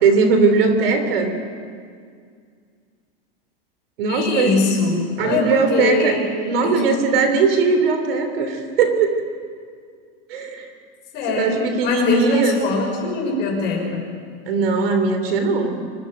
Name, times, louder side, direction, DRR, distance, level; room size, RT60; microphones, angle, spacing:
voice 1, 0.0-1.3 4.0-4.6 5.2-6.1 6.5-9.2 10.3-10.7 11.3-12.6 14.5-15.8, right 4 dB, 75° right, 7 dB, 3.3 m, -19 dB
voice 2, 4.1-6.3 6.6-6.8 11.1-14.0, left 3 dB, 35° left, -1 dB, 6.3 m, -22 dB
24.5 x 12.5 x 9.2 m, 2.1 s
supercardioid pair, 150°, 30 cm